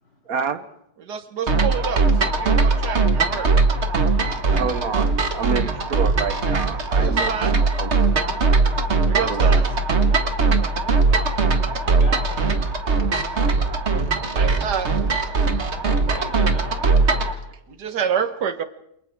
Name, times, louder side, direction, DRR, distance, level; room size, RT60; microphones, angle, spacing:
voice 1, 0.3-0.6 4.2-7.9 9.2-9.6 15.8-15.9, right 6 dB, 60° right, 11 dB, 1.4 m, -29 dB
voice 2, 1.0-3.5 6.9-7.6 9.1-9.7 14.3-14.9 17.7-18.6, right 7 dB, 80° right, 10 dB, 1.9 m, -28 dB
sound 1, 1.5-17.3, right 3 dB, 40° right, 1.9 m, -20 dB
voice 3, 11.3-12.6 16.1-17.5, left 1 dB, 80° left, -2 dB, 8.9 m, -41 dB
28.5 x 27.0 x 3.6 m, 0.74 s
omnidirectional pair, 1.8 m